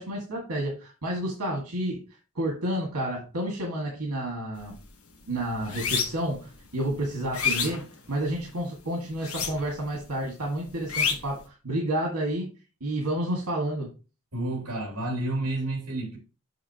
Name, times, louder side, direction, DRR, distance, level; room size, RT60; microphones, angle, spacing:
voice 1, 0.0-2.0 2.4-4.8 5.3-12.5 12.8-13.9, right 1 dB, 90° right, 1.9 m, -30 dB
sound 1, 4.6-4.9 5.2-6.4 6.8-8.5 9.2-9.9 10.2-11.4, left 6 dB, 65° left, 1.2 m, -29 dB
voice 2, 14.3-16.2, right 2 dB, 70° right, 2.8 m, -30 dB
6.5 x 6.2 x 2.9 m
head